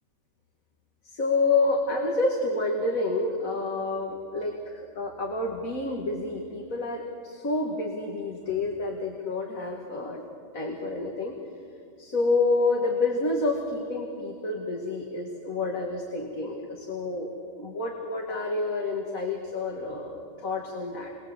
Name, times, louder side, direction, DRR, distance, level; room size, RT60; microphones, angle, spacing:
voice 1, 1.1-10.2 10.5-11.3 12.0-17.3 17.6-21.1, left 3 dB, 85° left, 0 dB, 2.7 m, -28 dB
29.0 x 23.0 x 8.0 m, 2.3 s
omnidirectional pair, 1.4 m